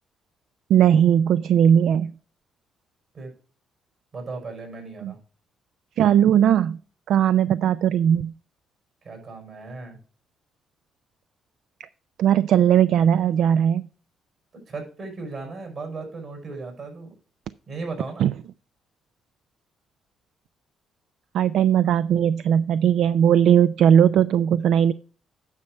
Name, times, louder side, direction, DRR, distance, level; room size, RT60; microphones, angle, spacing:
voice 1, 0.7-2.1 5.0-5.1 6.0-6.8 7.1-8.3 11.8-11.9 12.2-13.9 18.2-18.3 21.3-24.9, right 9 dB, 75° right, 15 dB, 0.3 m, -18 dB
voice 2, 4.1-5.2 9.0-10.0 14.5-17.2 17.7-18.3, right 3 dB, 55° right, 3 dB, 5.8 m, -36 dB
9.6 x 6.2 x 4.4 m, 0.40 s
cardioid pair, 90°, 0 cm